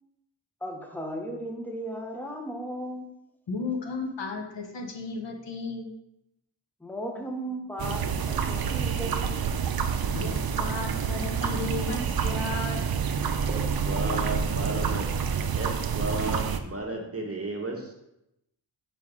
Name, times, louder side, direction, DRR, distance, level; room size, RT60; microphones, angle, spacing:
voice 1, 0.6-3.1 6.8-9.5, right 1 dB, 5° left, 3 dB, 0.7 m, -36 dB
voice 2, 3.5-5.9 10.1-12.8, left 3 dB, 75° left, 3 dB, 0.9 m, -34 dB
sound 1, 7.8-16.6, right 6 dB, 55° right, 0.5 m, -28 dB
voice 3, 13.5-15.1 15.6-17.9, right 2 dB, 30° right, 1 dB, 1.0 m, -33 dB
5.4 x 4.8 x 3.6 m, 0.84 s
wide cardioid pair, 95°, 44 cm